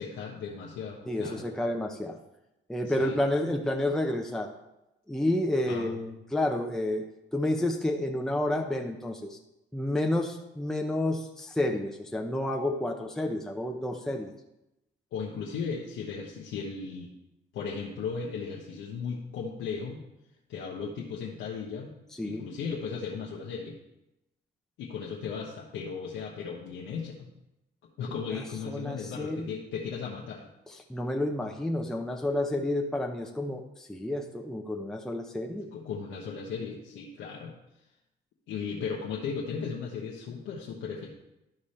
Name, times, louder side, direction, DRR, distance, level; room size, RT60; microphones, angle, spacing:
voice 1, 0.0-1.5 2.8-3.2 5.7-6.2 15.1-17.1 17.5-20.0 20.5-21.9 22.2-23.7 24.8-27.3 28.0-30.5 35.7-37.5 38.5-41.2, left 5 dB, 90° left, -3 dB, 1.1 m, -36 dB
voice 2, 1.1-2.2 2.7-4.5 5.1-7.1 7.3-9.4 9.7-14.3 22.2-22.5 28.3-29.5 30.7-35.7, left 1 dB, 5° left, 1 dB, 0.8 m, -30 dB
12.0 x 5.0 x 4.3 m, 0.91 s
cardioid pair, 90°, 20 cm